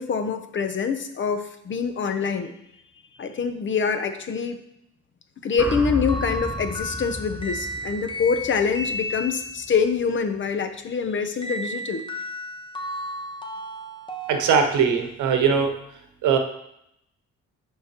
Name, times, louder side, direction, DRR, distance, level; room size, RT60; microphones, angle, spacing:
voice 1, 0.0-2.5 3.2-4.6 5.4-12.0, left 5 dB, 40° left, 8 dB, 0.7 m, -25 dB
sound 1, 5.6-9.8, left 1 dB, 5° right, 0.7 m, -33 dB
sound 2, 6.1-9.8 11.4-15.2, left 1 dB, 15° left, 1.1 m, -34 dB
voice 2, 14.3-15.7 16.2-16.4, right 6 dB, 80° right, 5 dB, 0.9 m, -20 dB
10.5 x 3.7 x 2.9 m, 0.78 s
cardioid pair, 90°, 30 cm